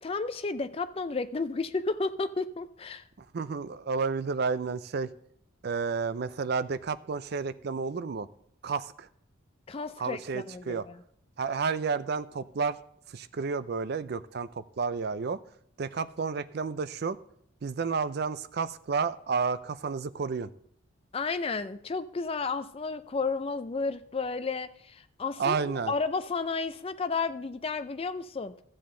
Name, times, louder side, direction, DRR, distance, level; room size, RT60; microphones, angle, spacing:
voice 1, 0.0-3.1 9.7-11.0 21.1-28.6, left 4 dB, 30° left, 11 dB, 0.4 m, -32 dB
voice 2, 3.3-5.1 5.6-8.3 8.6-9.1 10.0-10.8 11.4-12.8 13.1-15.4 15.8-17.2 17.6-20.5 25.4-25.9, right 5 dB, 50° right, 14 dB, 0.4 m, -31 dB
13.5 x 7.6 x 3.7 m, 0.69 s
head